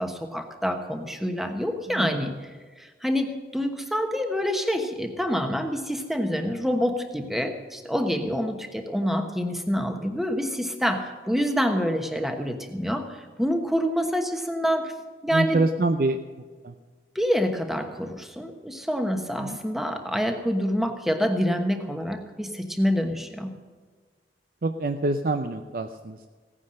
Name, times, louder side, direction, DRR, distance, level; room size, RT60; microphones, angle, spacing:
voice 1, 0.0-2.4 2.8-14.9 15.2-15.6 17.1-23.5, equal, ahead, 5 dB, 1.1 m, -27 dB
voice 2, 15.3-16.2 16.6-16.7 19.4-19.5 24.6-26.3, right 2 dB, 50° right, 7 dB, 0.5 m, -26 dB
16.5 x 9.8 x 6.4 m, 1.5 s
head